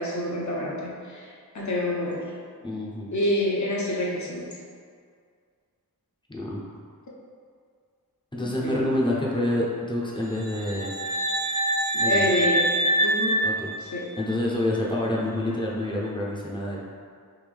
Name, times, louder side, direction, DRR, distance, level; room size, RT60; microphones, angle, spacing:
voice 1, 0.0-2.2 3.1-4.5 8.3-8.7 11.9-13.4 13.8-14.1, left 1 dB, 50° left, -4 dB, 0.8 m, -28 dB
voice 2, 2.6-3.1 6.3-6.6 8.3-10.9 11.9-12.2 13.4-16.8, left 1 dB, 15° left, -4 dB, 0.6 m, -28 dB
sound 1, 10.3-14.3, right 1 dB, 25° right, 0.7 m, -25 dB
3.5 x 2.6 x 3.4 m, 2.1 s
wide cardioid pair, 65°, 37 cm